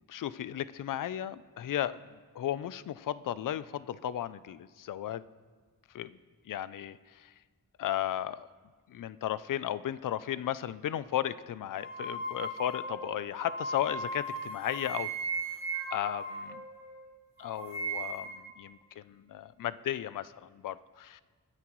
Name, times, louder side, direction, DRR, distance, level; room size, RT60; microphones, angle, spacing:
voice 1, 0.1-5.2 5.9-6.2 6.4-7.3 7.8-8.5 8.9-15.1 15.9-16.6 17.4-21.2, left 11 dB, 65° left, 16 dB, 0.5 m, -35 dB
sound 1, 11.8-17.1 17.4-18.4, right 2 dB, 5° right, 4.5 m, -37 dB
21.0 x 9.8 x 3.1 m, 1.5 s
wide cardioid pair, 130°, 34 cm